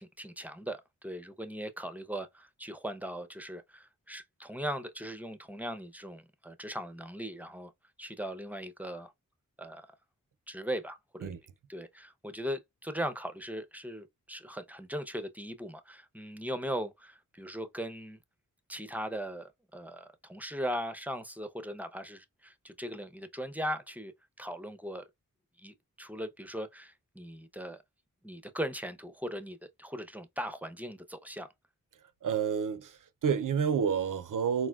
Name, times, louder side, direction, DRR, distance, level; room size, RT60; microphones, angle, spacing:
voice 1, 0.0-7.7 8.0-9.1 9.6-9.9 10.5-11.3 11.7-18.2 18.7-24.1 24.4-25.1 25.6-27.8 28.2-31.5, equal, 5° right, 0.6 m, -39 dB
voice 2, 32.2-34.7, right 7 dB, 65° right, 0.5 m, -29 dB
4.2 x 2.1 x 2.2 m
cardioid pair, 40°, 34 cm